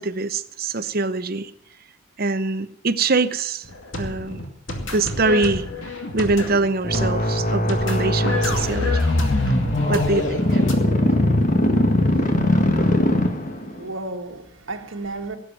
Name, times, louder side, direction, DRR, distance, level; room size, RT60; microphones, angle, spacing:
voice 1, 0.0-1.5 2.2-3.6 3.9-4.4 4.9-5.6 6.1-9.0 9.9-10.6, right 3 dB, 45° right, 0.8 m, -23 dB
sound 1, 3.6-10.7, left 2 dB, 65° left, 2.5 m, -30 dB
sound 2, 6.8-13.8, left 1 dB, 40° left, 1.5 m, -20 dB
voice 2, 13.6-15.4, right 2 dB, 70° right, 1.9 m, -33 dB
17.5 x 7.9 x 8.9 m
head